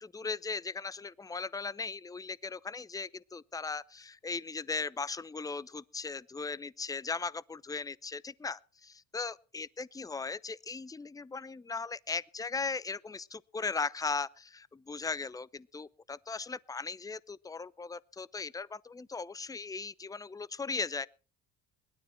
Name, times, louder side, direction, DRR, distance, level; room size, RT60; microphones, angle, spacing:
voice 1, 0.0-21.1, left 4 dB, 10° left, 0.6 m, -38 dB
19.5 x 13.0 x 4.5 m
hypercardioid pair, 70°, 41 cm